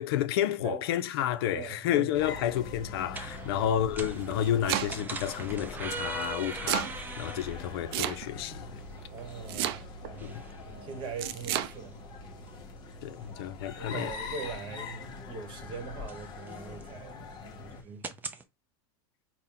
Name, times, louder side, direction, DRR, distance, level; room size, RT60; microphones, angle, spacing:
voice 1, 0.0-8.8 10.2-10.4 13.0-14.1, left 11 dB, 75° left, 0.5 m, -30 dB
sound 1, 1.2-18.4, right 4 dB, 15° right, 0.5 m, -44 dB
voice 2, 1.5-2.1 3.5-3.7 9.1-12.0 13.8-17.2 17.4-18.2, right 5 dB, 40° right, 1.0 m, -42 dB
sound 2, 2.1-17.8, left 3 dB, 35° left, 0.8 m, -43 dB
Domestic sounds home sounds, 4.1-5.2 6.2-6.9 7.9-8.5 9.5-10.1 11.2-11.7, right 12 dB, 70° right, 0.5 m, -31 dB
4.2 x 2.1 x 3.8 m
supercardioid pair, 135°, 13 cm